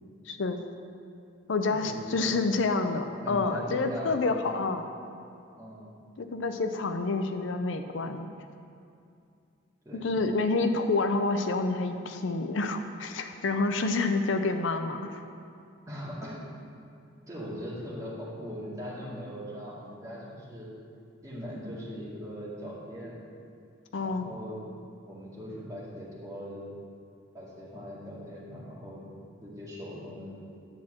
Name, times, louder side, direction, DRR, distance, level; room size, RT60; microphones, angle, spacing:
voice 1, 0.3-0.6 1.5-4.9 6.2-8.3 9.9-15.2 23.9-24.3, left 3 dB, 70° left, 7 dB, 0.5 m, -28 dB
voice 2, 1.7-2.5 3.2-4.3 5.6-5.9 9.8-10.2 15.9-16.4 17.3-20.7 21.2-23.2 24.0-24.6 25.0-26.7 27.3-29.0 29.4-30.4, equal, 15° right, -7 dB, 2.1 m, -40 dB
9.8 x 4.3 x 7.5 m, 2.4 s
head